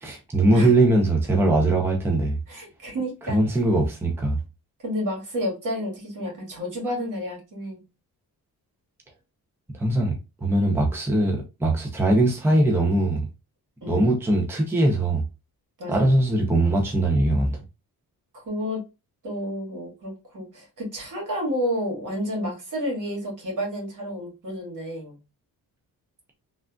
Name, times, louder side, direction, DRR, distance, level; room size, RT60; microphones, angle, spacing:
voice 1, 0.0-2.4 3.2-4.4 9.7-10.2 10.4-13.3 13.9-15.2 15.9-17.6, right 1 dB, 5° right, 0.6 m, -21 dB
voice 2, 2.5-3.4 4.8-7.8 13.8-14.1 15.8-16.1 18.5-18.8 19.2-25.2, equal, 55° right, 1.7 m, -30 dB
3.3 x 2.5 x 2.3 m
cardioid pair, 95°, 37 cm